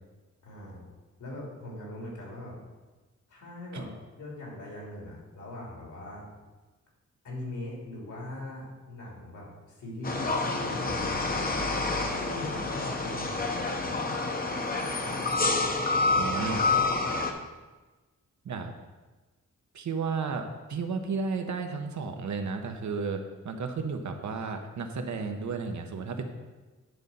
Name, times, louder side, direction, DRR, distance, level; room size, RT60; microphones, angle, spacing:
voice 1, 0.4-0.8 1.2-2.6 3.3-6.2 7.2-11.6 12.1-14.2, left 1 dB, 75° left, -3 dB, 2.8 m, -41 dB
sound 1, 10.0-17.3, left 3 dB, 30° left, 0.8 m, -28 dB
voice 2, 16.1-16.6 18.4-18.7 19.7-20.4 20.7-26.2, right 5 dB, 70° right, 5 dB, 0.9 m, -33 dB
9.9 x 4.0 x 5.4 m, 1.2 s
wide cardioid pair, 125°, 30 cm